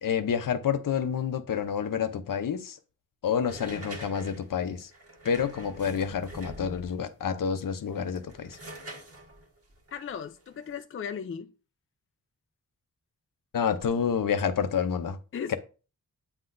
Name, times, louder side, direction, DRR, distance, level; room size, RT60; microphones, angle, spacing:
voice 1, 0.0-2.8 3.2-4.9 5.2-8.6 13.5-15.2 15.5-15.6, left 7 dB, 70° left, 0.8 m, -28 dB
sound 1, 3.4-7.1 7.8-10.8, right 1 dB, 45° right, 1.4 m, -45 dB
voice 2, 9.9-11.5 15.3-15.6, left 7 dB, 40° left, 0.4 m, -36 dB
8.8 x 5.8 x 2.6 m
wide cardioid pair, 130°, 34 cm